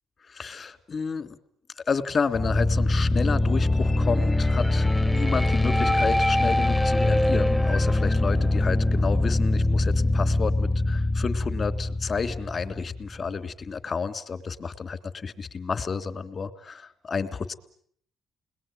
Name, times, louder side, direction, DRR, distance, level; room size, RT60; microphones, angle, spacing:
voice 1, 0.3-1.4 1.9-17.5, left 5 dB, 45° left, 9 dB, 3.2 m, -30 dB
sound 1, 2.3-13.2, left 2 dB, 10° left, 1.1 m, -23 dB
30.0 x 21.0 x 9.2 m, 0.64 s
cardioid pair, 90°, 0 cm